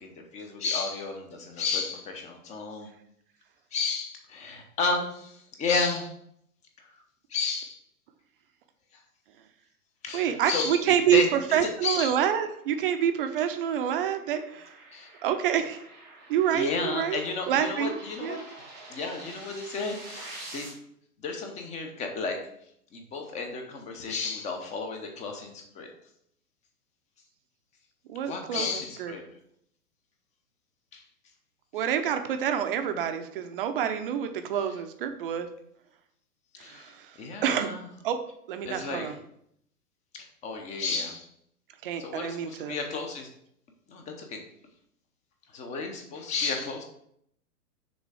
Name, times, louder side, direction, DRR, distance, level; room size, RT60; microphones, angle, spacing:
voice 1, 0.0-2.9 3.7-6.1 7.3-7.8 10.0-11.3 11.6-12.1 14.9-15.1 16.5-18.4 18.9-20.7 21.2-22.4 22.9-25.9 28.2-29.2 30.9-31.0 36.6-36.9 37.2-37.8 38.7-39.1 40.4-41.3 42.0-43.3 43.9-44.4 45.5-46.8, left 4 dB, 15° left, 4 dB, 0.7 m, -32 dB
voice 2, 10.1-14.7 15.2-15.8 16.3-17.2 17.5-18.4 28.1-29.1 31.7-35.5 36.6-37.1 37.4-37.7 38.0-38.2 38.5-39.2 41.8-42.8, right 9 dB, 35° right, 7 dB, 0.6 m, -27 dB
sound 1, 12.3-20.7, right 2 dB, 5° right, 0.3 m, -48 dB
6.2 x 3.7 x 4.8 m, 0.71 s
figure-of-eight pair, 115°, 46 cm